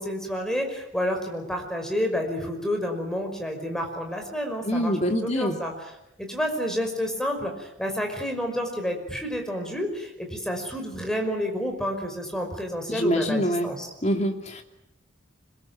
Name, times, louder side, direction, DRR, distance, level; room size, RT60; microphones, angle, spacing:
voice 1, 0.0-5.9 6.2-13.9, equal, 5° left, 3 dB, 5.5 m, -29 dB
voice 2, 4.7-5.6 12.9-13.7 14.0-14.6, equal, 35° left, 4 dB, 2.9 m, -25 dB
26.5 x 21.5 x 9.1 m, 0.84 s
head